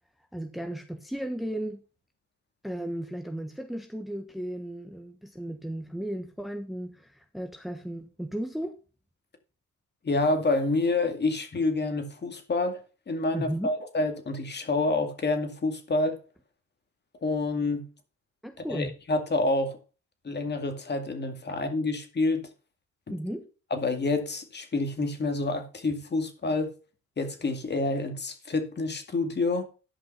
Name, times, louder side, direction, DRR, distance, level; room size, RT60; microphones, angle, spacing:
voice 1, 0.3-1.8 2.6-8.7 13.3-13.7 18.4-18.9 23.1-23.5, right 1 dB, ahead, 1.2 m, -35 dB
voice 2, 10.0-16.2 17.2-17.9 18.7-19.8 20.2-22.4 23.7-26.7 27.2-29.6, left 2 dB, 35° left, 2.2 m, -28 dB
11.0 x 5.5 x 5.7 m
cardioid pair, 90°, 30 cm